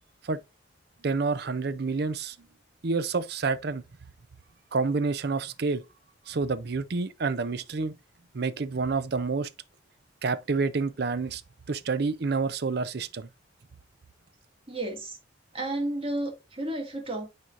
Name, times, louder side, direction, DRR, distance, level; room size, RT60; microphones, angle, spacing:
voice 1, 1.0-2.4 2.8-3.8 4.7-5.8 6.3-7.9 8.3-9.5 10.2-11.4 11.7-13.3, right 4 dB, 60° right, 0.6 m, -28 dB
voice 2, 14.7-15.2 15.5-17.3, right 1 dB, 30° right, 2.0 m, -32 dB
9.5 x 4.3 x 2.5 m
head